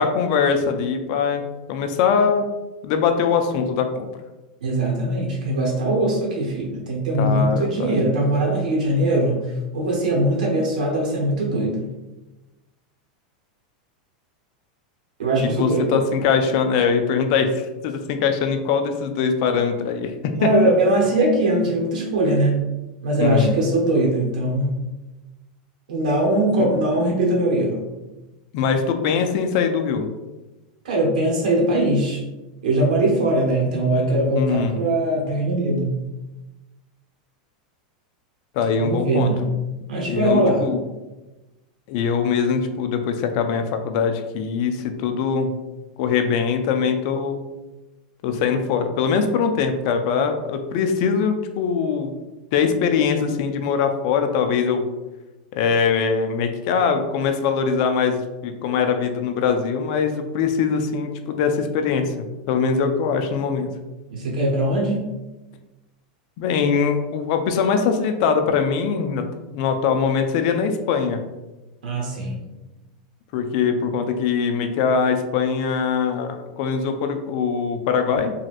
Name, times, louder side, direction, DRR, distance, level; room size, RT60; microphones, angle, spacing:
voice 1, 0.0-2.4 2.8-4.1 7.2-8.1 15.4-20.1 20.4-20.5 23.2-23.6 28.5-30.1 33.6-33.9 34.3-34.8 38.5-39.3 40.0-40.8 41.9-45.5 46.0-47.4 48.2-52.1 52.5-54.9 55.5-63.7 66.4-69.3 69.5-71.2 73.3-78.3, left 6 dB, 55° left, 6 dB, 0.4 m, -22 dB
voice 2, 4.6-9.4 9.7-11.9 15.2-16.0 20.3-22.6 23.0-24.8 25.9-27.9 30.8-32.2 32.6-35.9 38.8-39.4 39.9-40.7 64.1-65.0 71.8-72.4, right 1 dB, 90° right, -1 dB, 1.0 m, -21 dB
3.1 x 2.7 x 2.5 m, 1.1 s
supercardioid pair, 135°, 4 cm